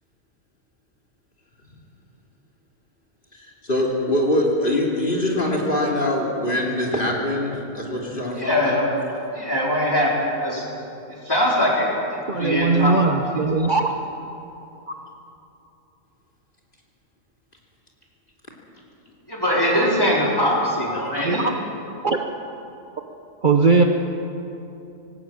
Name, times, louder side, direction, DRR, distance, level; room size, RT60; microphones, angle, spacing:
voice 1, 3.3-8.8, left 1 dB, 40° left, -1 dB, 3.2 m, -23 dB
voice 2, 8.4-8.9 9.3-10.6 11.3-11.9 12.4-13.1 19.3-21.4, equal, 15° left, -4 dB, 4.7 m, -21 dB
voice 3, 12.3-13.9 21.2-21.4 22.0-22.2 23.4-23.8, right 4 dB, 40° right, 4 dB, 1.0 m, -19 dB
19.5 x 17.0 x 8.7 m, 2.9 s
omnidirectional pair, 1.4 m